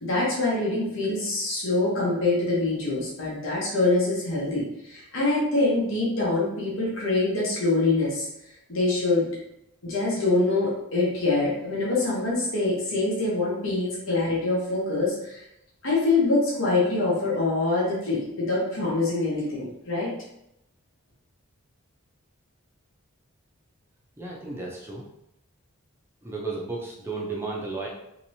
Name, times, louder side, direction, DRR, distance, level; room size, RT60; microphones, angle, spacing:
voice 1, 0.0-8.3 8.7-9.2 9.8-15.4 15.8-20.1, left 2 dB, 60° left, -6 dB, 1.0 m, -25 dB
voice 2, 24.2-25.0 26.2-27.9, right 3 dB, 10° right, -4 dB, 0.5 m, -33 dB
3.1 x 2.9 x 2.7 m, 0.82 s
head